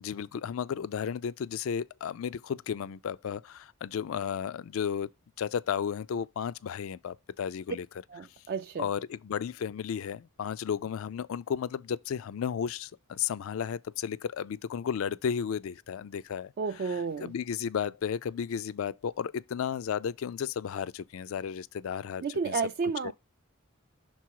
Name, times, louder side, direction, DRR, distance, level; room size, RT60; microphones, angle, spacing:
voice 1, 0.0-5.1 5.4-7.9 8.8-16.5 17.2-22.6 23.0-23.1, left 7 dB, 70° left, 0.3 m, -33 dB
voice 2, 8.1-8.9 16.6-17.3 22.2-23.1, right 5 dB, 45° right, 0.3 m, -32 dB
6.1 x 3.8 x 4.6 m
head